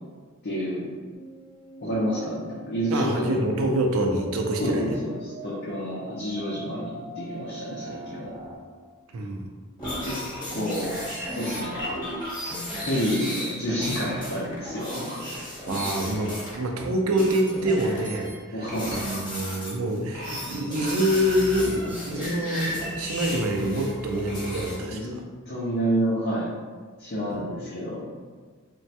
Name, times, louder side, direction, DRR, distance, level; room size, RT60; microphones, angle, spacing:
voice 1, 0.4-0.9 1.8-3.4 4.6-8.4 10.0-10.1 10.5-11.0 11.3-11.8 12.8-15.2 18.5-19.0 24.9-25.1 25.5-26.5 27.0-28.1, equal, 50° left, -7 dB, 0.5 m, -29 dB
sound 1, 1.1-8.6, right 1 dB, 20° right, 0.6 m, -42 dB
voice 2, 2.9-5.0 9.1-9.5 15.7-18.3 18.6-25.2 27.3-27.4, right 1 dB, 80° right, 2 dB, 0.4 m, -26 dB
sound 2, 9.8-16.9 17.2-18.3 18.7-19.8 20.1-24.8, equal, 20° left, 0.9 m, -34 dB
3.0 x 2.2 x 2.7 m, 1.5 s
head